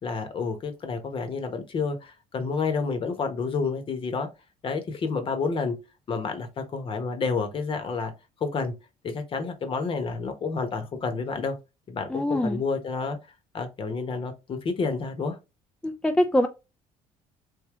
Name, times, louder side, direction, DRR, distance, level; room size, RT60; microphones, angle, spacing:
voice 1, 0.0-4.3 4.6-5.7 6.1-8.1 8.4-8.7 9.0-11.5 11.9-13.2 13.5-15.4, left 4 dB, 45° left, 1.0 m, -29 dB
voice 2, 12.1-12.6 15.8-16.5, left 1 dB, 5° left, 0.3 m, -24 dB
3.6 x 2.7 x 3.0 m
cardioid pair, 95°, 13 cm